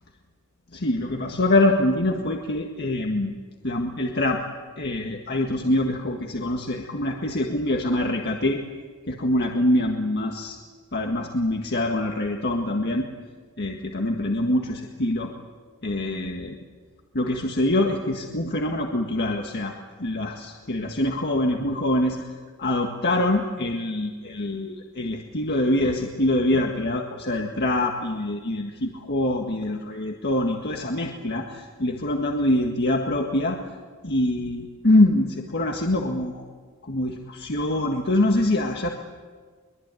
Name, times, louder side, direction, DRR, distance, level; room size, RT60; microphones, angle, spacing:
voice 1, 0.7-3.3 3.6-4.4 4.8-8.6 9.1-10.6 10.9-13.1 13.6-15.3 15.8-16.6 17.1-19.7 20.0-22.3 22.6-33.6 34.0-36.4 36.8-38.9, left 1 dB, 50° left, 2 dB, 1.8 m, -24 dB
23.0 x 23.0 x 9.2 m, 1.5 s
head